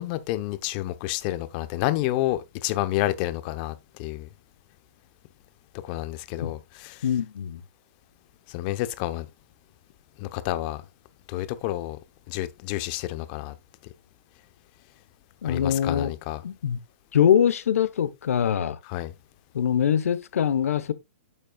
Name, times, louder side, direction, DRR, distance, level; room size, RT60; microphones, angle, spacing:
voice 1, 0.0-4.3 5.8-7.1 8.5-9.3 10.2-10.8 11.3-12.0 12.3-13.6 15.4-16.4 18.8-19.1, left 15 dB, 35° left, 0.9 m, -29 dB
voice 2, 7.0-7.6 15.4-16.1 16.4-16.8 17.1-18.8 19.5-20.9, left 9 dB, 75° left, 1.0 m, -23 dB
8.9 x 6.7 x 2.3 m
hypercardioid pair, 145°, 8 cm